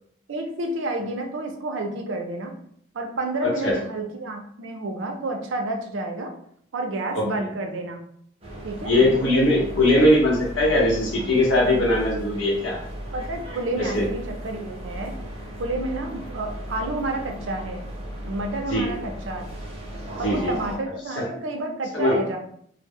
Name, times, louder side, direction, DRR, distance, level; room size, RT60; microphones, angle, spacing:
voice 1, 0.3-2.5 2.9-6.3 6.7-8.0 8.6-9.1 13.1-15.1 15.6-17.8 18.3-19.5 20.2-22.4, right 2 dB, 80° right, 3 dB, 0.5 m, -30 dB
voice 2, 3.4-3.8 7.1-7.3 8.8-12.8 13.8-14.1 18.7-18.9 20.2-20.5 21.2-21.3 21.9-22.2, left 1 dB, 85° left, -2 dB, 0.8 m, -20 dB
sound 1, 8.4-20.8, equal, 30° right, 0.6 m, -36 dB
2.0 x 2.0 x 3.5 m, 0.65 s
head